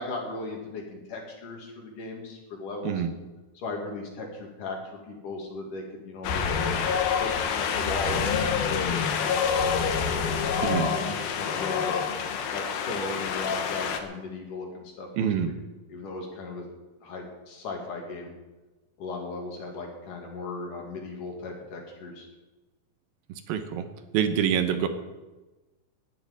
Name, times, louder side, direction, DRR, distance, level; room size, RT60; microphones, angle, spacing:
voice 1, 0.0-3.0 3.6-4.8 5.1-6.7 7.2-11.9 12.5-15.5 15.9-16.6 17.0-18.3 19.0-22.3, left 3 dB, 60° left, 1 dB, 3.9 m, -37 dB
Wind, 6.2-14.0, left 6 dB, 80° left, 3.0 m, -27 dB
voice 2, 15.1-15.5 23.5-23.9 24.1-24.9, right 8 dB, 80° right, 8 dB, 2.8 m, -25 dB
10.5 x 9.9 x 9.5 m, 1.1 s
omnidirectional pair, 4.2 m